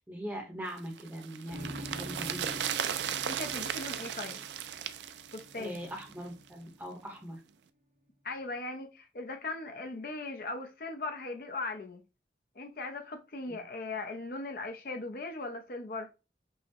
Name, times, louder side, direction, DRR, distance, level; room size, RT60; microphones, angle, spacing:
voice 1, 0.0-2.6 5.6-7.4 13.5-13.6, equal, 10° right, 0.8 m, -41 dB
sound 1, 0.8-6.2 6.5-6.6, right 9 dB, 80° right, 0.3 m, -36 dB
sound 2, 1.5-7.1, equal, 45° right, 0.7 m, -47 dB
voice 2, 3.2-4.4 5.3-5.8 8.2-12.0 12.6-16.1, left 3 dB, 55° left, 0.6 m, -39 dB
5.4 x 2.1 x 2.7 m
head